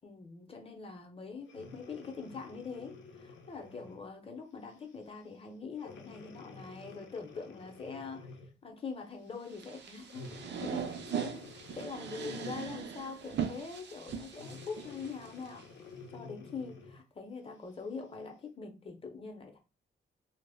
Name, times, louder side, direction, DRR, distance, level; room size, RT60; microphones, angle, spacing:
voice 1, 0.0-8.3 8.6-10.2 10.6-11.5 11.8-15.7 16.1-19.6, left 5 dB, 30° left, 0.6 m, -43 dB
Breathing, 1.4-4.1 4.7-4.9 5.8-8.6 10.1-12.9 14.3-17.1 17.7-17.8, left 4 dB, 90° left, 0.5 m, -50 dB
sound 1, 9.5-15.6, right 8 dB, 70° right, 0.4 m, -40 dB
2.0 x 2.0 x 3.4 m
wide cardioid pair, 105°, 19 cm